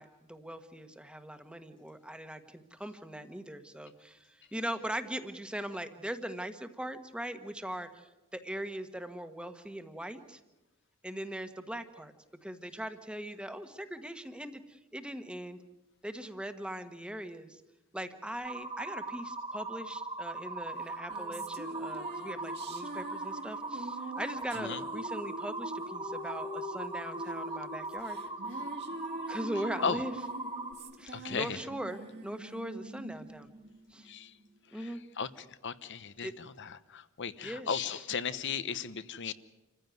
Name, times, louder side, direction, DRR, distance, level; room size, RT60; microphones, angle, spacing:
voice 1, 0.0-10.4 11.0-12.1 12.4-15.6 16.0-17.6 17.9-28.2 29.3-30.1 31.0-33.5 33.9-34.1 34.7-35.0 36.2-36.3 37.4-38.0, right 1 dB, 5° right, 8 dB, 1.4 m, -40 dB
sound 1, 18.4-30.7, right 3 dB, 25° right, 2.1 m, -40 dB
sound 2, 20.8-34.5, right 1 dB, 50° right, 2.3 m, -44 dB
voice 2, 31.1-31.6 34.1-34.3 35.2-35.3 35.6-36.3 36.6-39.3, left 6 dB, 55° left, 15 dB, 1.0 m, -35 dB
28.0 x 15.0 x 9.4 m, 1.0 s
head